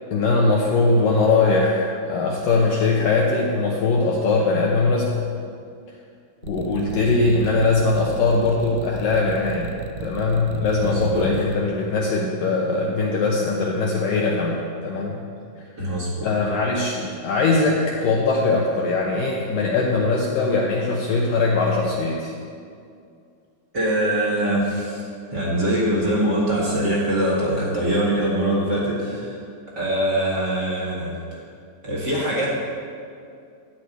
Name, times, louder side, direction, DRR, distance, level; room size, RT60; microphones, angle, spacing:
voice 1, 0.1-5.2 6.4-15.2 16.2-22.3, left 3 dB, 75° left, -2 dB, 2.0 m, -21 dB
sound 1, 6.4-11.5, right 6 dB, 85° right, 3.0 m, -34 dB
voice 2, 6.9-7.3 10.5-11.3 15.8-16.3 23.7-29.4 29.7-31.4 31.8-32.5, right 1 dB, 45° right, -5 dB, 1.3 m, -23 dB
13.5 x 4.9 x 8.9 m, 2.3 s
omnidirectional pair, 5.0 m